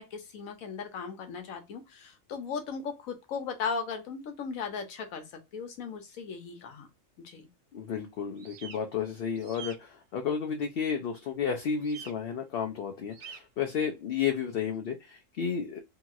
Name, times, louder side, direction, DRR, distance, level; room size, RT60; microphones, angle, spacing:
voice 1, 0.0-6.9 7.2-7.5, left 5 dB, 90° left, 1.2 m, -37 dB
voice 2, 7.7-15.8, left 7 dB, 65° left, 0.6 m, -32 dB
sound 1, 8.4-8.8 9.3-9.8 11.8-12.1 13.1-13.4, right 7 dB, 65° right, 0.8 m, -45 dB
2.8 x 2.7 x 2.3 m
omnidirectional pair, 1.4 m